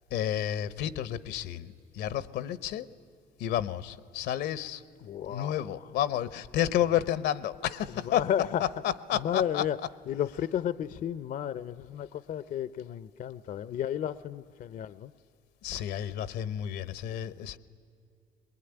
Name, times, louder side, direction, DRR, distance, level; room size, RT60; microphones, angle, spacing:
voice 1, 0.1-2.9 3.4-4.9 5.2-8.3 8.6-9.7 15.6-17.6, left 11 dB, 80° left, 17 dB, 0.8 m, -31 dB
voice 2, 5.0-5.6 8.1-8.6 9.2-9.8 10.1-15.1, left 10 dB, 55° left, 17 dB, 0.5 m, -32 dB
21.5 x 21.5 x 10.0 m, 2.6 s
cardioid pair, 110°, 17 cm